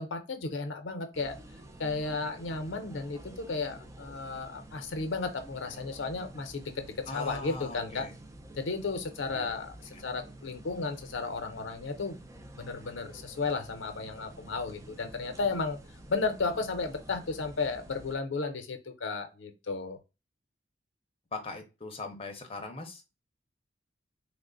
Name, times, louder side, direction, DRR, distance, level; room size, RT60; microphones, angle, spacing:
voice 1, 0.0-1.4 1.8-8.1 8.6-9.7 10.0-12.3 12.5-15.8 16.1-20.0, left 4 dB, 80° left, 7 dB, 0.6 m, -34 dB
sound 1, 1.1-18.2, right 1 dB, 15° right, 0.4 m, -50 dB
voice 2, 7.1-8.1 9.3-9.5 21.3-23.2, left 3 dB, 30° left, 4 dB, 0.7 m, -40 dB
3.1 x 2.1 x 3.7 m, 0.28 s
head